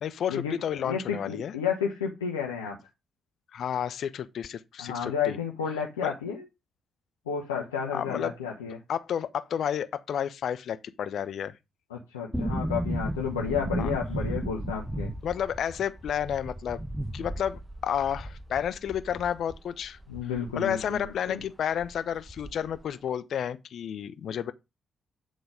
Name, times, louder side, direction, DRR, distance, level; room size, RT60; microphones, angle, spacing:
voice 1, 0.0-1.5 3.5-5.4 6.0-6.1 7.9-8.3 8.9-11.6 13.8-13.9 15.2-16.8 17.1-20.0 20.6-24.5, left 9 dB, 60° left, 0.6 m, -31 dB
voice 2, 0.8-2.8 4.8-6.5 7.3-8.8 11.9-15.1 20.1-21.4, left 7 dB, 90° left, 0.9 m, -31 dB
sound 1, 12.3-21.2 21.4-21.5 21.8-22.8 23.1-23.2, right 1 dB, 10° right, 0.9 m, -35 dB
9.2 x 3.9 x 4.8 m
hypercardioid pair, 40°, 0 cm